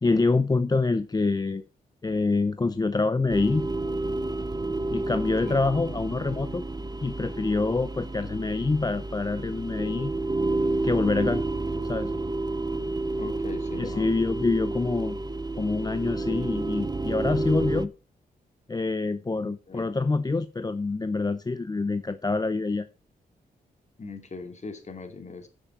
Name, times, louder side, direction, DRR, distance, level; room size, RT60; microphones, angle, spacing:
voice 1, 0.0-1.6 2.0-3.7 4.9-6.6 7.0-10.1 10.8-11.4 11.9-12.1 13.8-15.2 15.5-17.9 18.7-22.9, left 3 dB, 25° left, 0.6 m, -26 dB
sound 1, 3.3-17.9, right 2 dB, 25° right, 0.8 m, -30 dB
voice 2, 13.1-14.1 19.3-19.9 24.0-25.5, left 3 dB, 45° left, 2.5 m, -40 dB
9.8 x 6.3 x 5.9 m
cardioid pair, 70°, 17 cm